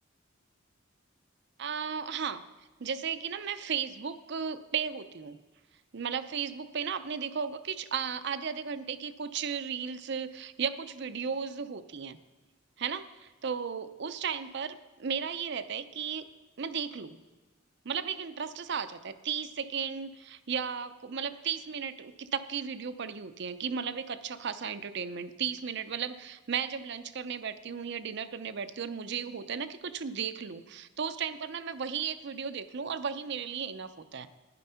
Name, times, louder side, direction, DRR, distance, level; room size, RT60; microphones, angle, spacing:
voice 1, 1.6-2.4 2.8-5.4 5.9-12.2 12.8-16.3 16.6-17.2 17.8-34.3, right 7 dB, 60° right, 12 dB, 0.6 m, -35 dB
11.5 x 10.0 x 5.7 m, 1.2 s
head